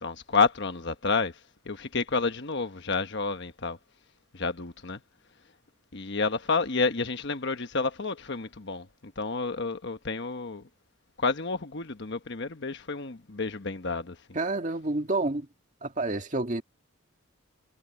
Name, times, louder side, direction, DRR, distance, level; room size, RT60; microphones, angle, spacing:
voice 1, 0.0-1.4 1.6-3.8 4.3-5.0 5.9-10.7 11.2-14.2, left 4 dB, 55° left, 1.2 m, -30 dB
voice 2, 14.3-15.5 15.8-16.6, right 2 dB, 35° right, 2.0 m, -29 dB
head